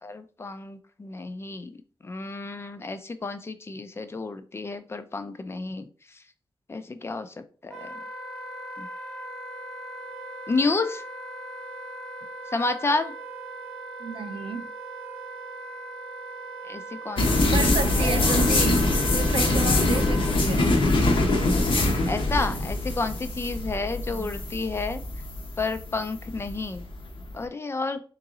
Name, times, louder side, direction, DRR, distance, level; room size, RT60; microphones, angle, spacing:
voice 1, 0.0-1.8 2.0-5.9 6.7-7.9 8.8-8.9 10.5-11.0 12.5-13.1 16.7-18.4 22.1-25.0 25.6-26.9 27.3-28.0, left 3 dB, 30° left, 0.4 m, -30 dB
Wind instrument woodwind instrument, 7.7-20.4, right 2 dB, 5° left, 1.0 m, -39 dB
voice 2, 14.0-14.7 17.4-18.8 19.1-20.8 24.1-24.5, right 5 dB, 75° right, 0.5 m, -32 dB
sound 1, 17.2-27.3, left 2 dB, 70° left, 0.9 m, -23 dB
3.7 x 3.0 x 3.6 m
wide cardioid pair, 175°, 9 cm